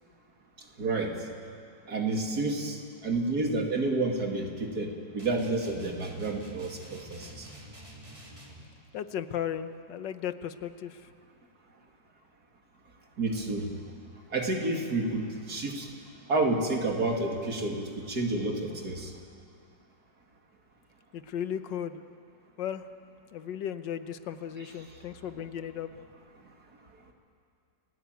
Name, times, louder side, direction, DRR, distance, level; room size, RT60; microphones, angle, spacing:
voice 1, 0.8-1.2 1.9-7.5 13.2-13.7 14.3-15.9 16.3-19.1, right 2 dB, 55° right, 2 dB, 2.9 m, -30 dB
sound 1, 5.2-8.7, right 1 dB, 15° right, 3.1 m, -48 dB
voice 2, 8.9-11.1 21.1-22.0 22.6-22.9 23.3-25.9, left 9 dB, 75° left, 11 dB, 1.6 m, -35 dB
29.5 x 18.5 x 9.2 m, 2.3 s
omnidirectional pair, 2.0 m